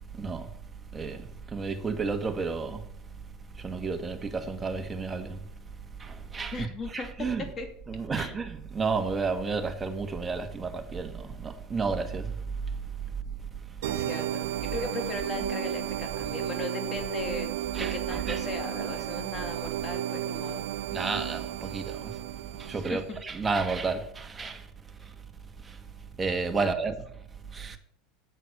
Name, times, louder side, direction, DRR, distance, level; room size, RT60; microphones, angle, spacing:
voice 1, 0.2-0.5 0.9-2.8 3.6-5.4 6.0-6.7 6.9-7.5 7.9-12.4 17.7-18.4 20.9-22.1 22.6-24.6 25.7-25.8 26.2-27.0 27.5-27.8, right 4 dB, 20° right, 1.7 m, -31 dB
voice 2, 6.5-7.1 7.6-7.7 8.1-8.4 13.9-17.5 17.8-20.7 22.7-23.2 26.6-26.7, left 3 dB, 30° left, 2.7 m, -37 dB
sound 1, 13.8-23.2, right 13 dB, 75° right, 0.4 m, -33 dB
8.9 x 8.2 x 6.6 m
hypercardioid pair, 90°, 0 cm